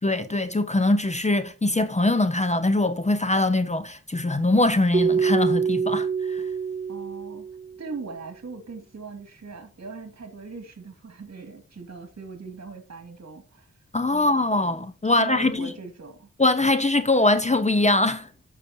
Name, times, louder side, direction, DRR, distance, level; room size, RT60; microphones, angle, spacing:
voice 1, 0.0-6.4 13.9-15.7 16.4-18.3, left 2 dB, 25° left, 0.7 m, -22 dB
Keyboard (musical), 4.9-7.8, right 6 dB, 25° right, 0.5 m, -25 dB
voice 2, 6.9-7.5 7.8-13.7 14.1-14.6 15.1-16.3, right 4 dB, 60° right, 2.2 m, -40 dB
14.0 x 5.8 x 2.7 m
wide cardioid pair, 105°, 30 cm